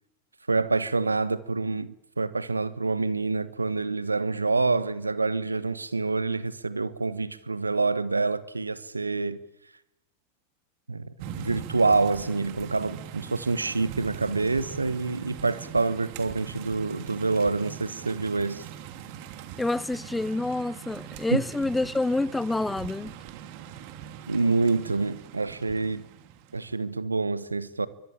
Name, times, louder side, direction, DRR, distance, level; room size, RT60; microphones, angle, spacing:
voice 1, 0.5-9.4 10.9-18.6 21.3-21.4 24.3-26.0 26.5-27.9, right 3 dB, 90° right, 1.2 m, -27 dB
sound 1, 11.2-26.7, right 9 dB, 55° right, 2.8 m, -41 dB
voice 2, 19.6-23.2, left 2 dB, 10° left, 1.0 m, -27 dB
28.0 x 23.5 x 8.8 m
figure-of-eight pair, 90°, 0 cm